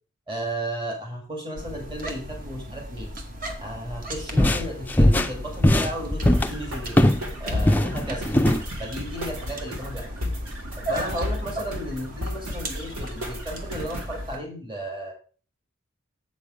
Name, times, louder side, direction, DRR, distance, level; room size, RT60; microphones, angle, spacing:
voice 1, 0.3-3.1 3.6-7.0 7.4-8.2 8.8-10.1 10.8-15.1, right 1 dB, 25° right, 1 dB, 2.0 m, -34 dB
sound 1, 1.6-14.4, equal, 40° right, 1.1 m, -36 dB
sound 2, 4.1-7.3 7.6-8.6, left 1 dB, 10° left, 0.4 m, -20 dB
sound 3, 6.2-14.2, left 1 dB, 90° right, 2.2 m, -33 dB
7.6 x 5.3 x 4.9 m, 0.39 s
head